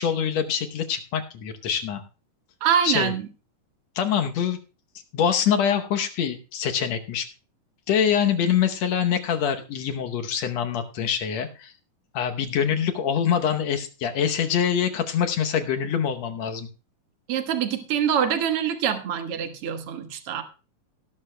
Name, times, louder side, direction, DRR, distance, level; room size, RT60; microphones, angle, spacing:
voice 1, 0.0-2.0 2.8-3.1 4.0-4.6 5.1-7.3 7.9-11.7 12.1-16.7, left 8 dB, 65° left, 6 dB, 1.8 m, -24 dB
voice 2, 2.6-3.2 17.3-20.4, right 8 dB, 55° right, 7 dB, 1.8 m, -25 dB
18.0 x 12.0 x 2.2 m, 0.33 s
omnidirectional pair, 3.8 m